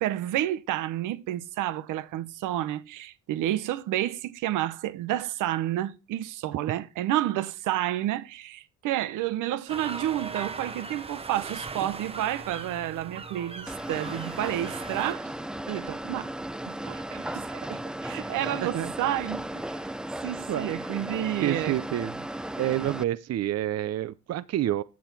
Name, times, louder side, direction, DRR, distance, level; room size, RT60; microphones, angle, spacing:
voice 1, 0.0-15.3 15.7-16.3 16.7-19.8 20.2-21.8, right 13 dB, 90° right, 0.8 m, -30 dB
sound 1, 9.7-15.1, right 4 dB, 20° right, 0.8 m, -39 dB
sound 2, 13.7-23.0, right 1 dB, 5° right, 0.4 m, -36 dB
voice 2, 18.6-18.9 20.5-20.7 21.4-22.3 22.6-24.8, right 13 dB, 55° right, 0.6 m, -28 dB
8.3 x 7.2 x 4.5 m
cardioid pair, 90°, 30 cm